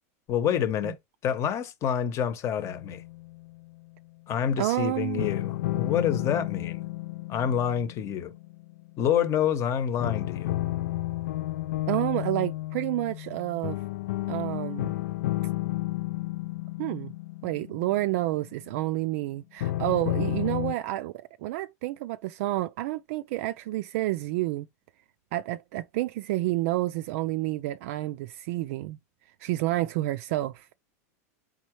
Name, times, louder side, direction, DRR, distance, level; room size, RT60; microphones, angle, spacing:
voice 1, 0.3-1.0 1.2-3.0 4.3-6.8 7.3-8.3 9.0-10.5, left 9 dB, 35° left, 0.9 m, -27 dB
sound 1, 2.6-3.8 5.2-9.2 10.0-18.8 19.6-20.7, left 16 dB, 80° left, 0.4 m, -32 dB
voice 2, 4.6-5.3 11.9-13.8 14.3-14.9 16.8-17.1 17.4-24.7 25.3-29.0 29.4-30.7, right 16 dB, 60° right, 0.4 m, -29 dB
4.3 x 3.8 x 3.1 m
supercardioid pair, 135°, 9 cm